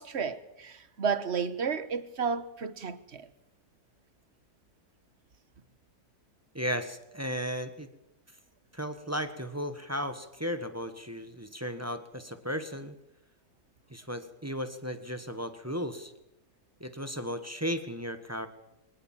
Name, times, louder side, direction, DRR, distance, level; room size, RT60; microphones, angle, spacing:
voice 1, 0.0-3.3, right 6 dB, 45° right, 1.4 m, -32 dB
voice 2, 6.5-7.9 8.7-13.0 13.9-16.1 16.8-18.5, equal, 10° right, 1.3 m, -35 dB
23.0 x 19.5 x 7.5 m
omnidirectional pair, 1.6 m